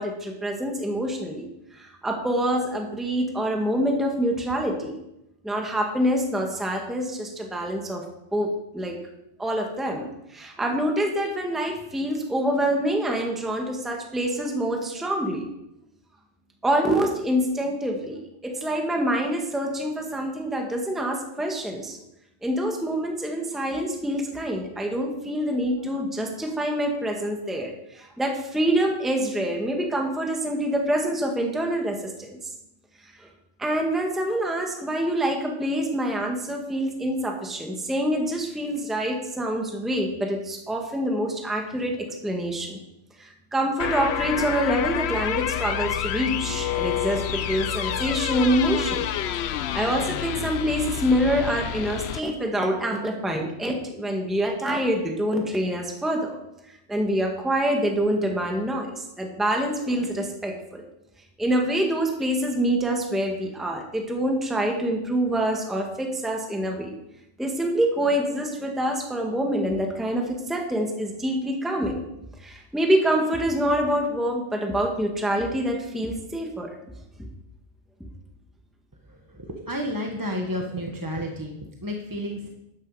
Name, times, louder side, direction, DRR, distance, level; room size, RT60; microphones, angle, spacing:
voice 1, 0.0-1.4 1.7-4.9 5.4-8.0 8.3-8.9 9.4-15.4 16.6-22.0 22.4-32.4 33.2-33.3 33.6-42.8 43.2-49.1 49.4-56.4 56.9-60.8 61.4-66.9 67.4-72.0 72.4-76.8, right 1 dB, ahead, 1 dB, 1.5 m, -26 dB
sound 1, 43.8-52.2, left 11 dB, 70° left, 0.8 m, -28 dB
voice 2, 79.0-82.5, equal, 20° right, 1 dB, 1.2 m, -31 dB
12.5 x 10.5 x 4.8 m, 0.86 s
omnidirectional pair, 1.2 m